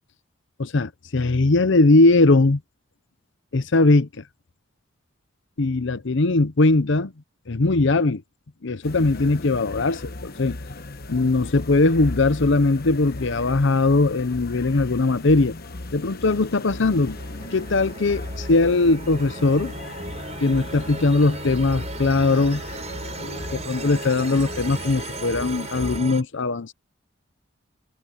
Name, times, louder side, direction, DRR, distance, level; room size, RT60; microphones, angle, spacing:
voice 1, 0.6-2.6 3.5-4.1 5.6-7.1 7.5-8.2 8.6-10.6 11.1-15.5 15.9-17.2 17.5-19.7 20.4-22.6 23.2-26.7, left 2 dB, 65° left, 0.8 m, -20 dB
sound 1, 8.8-26.0, left 2 dB, 50° left, 1.2 m, -37 dB
sound 2, 16.2-26.2, right 3 dB, 35° right, 5.7 m, -36 dB
head